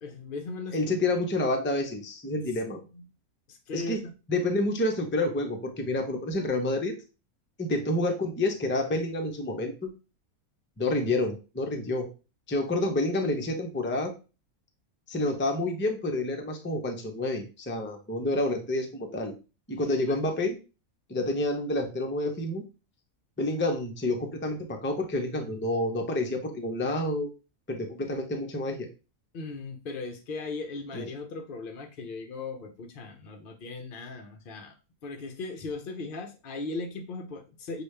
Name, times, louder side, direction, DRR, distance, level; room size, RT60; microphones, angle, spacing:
voice 1, 0.0-1.0 2.9-3.0 3.5-4.1 19.8-20.2 29.3-34.8 35.0-37.8, left 3 dB, 55° left, 5 dB, 0.6 m, -38 dB
voice 2, 0.7-2.8 3.7-6.9 7.6-9.9 10.8-12.1 12.5-14.1 15.1-19.3 19.7-20.6 21.1-22.6 23.4-27.3 27.7-28.9 30.9-31.0, left 2 dB, 15° left, 4 dB, 0.4 m, -29 dB
6.7 x 2.4 x 3.3 m, 0.31 s
omnidirectional pair, 1.5 m